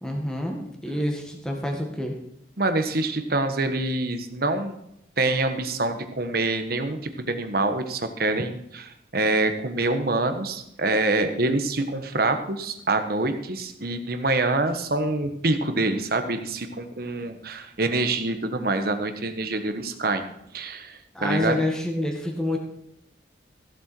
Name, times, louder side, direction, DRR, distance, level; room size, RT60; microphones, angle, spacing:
voice 1, 0.0-2.1 21.1-22.6, left 1 dB, 5° left, 1 dB, 1.9 m, -28 dB
voice 2, 2.6-4.8 5.2-20.2 20.5-21.6, right 2 dB, 55° right, 8 dB, 1.3 m, -26 dB
15.5 x 7.9 x 4.6 m, 0.77 s
head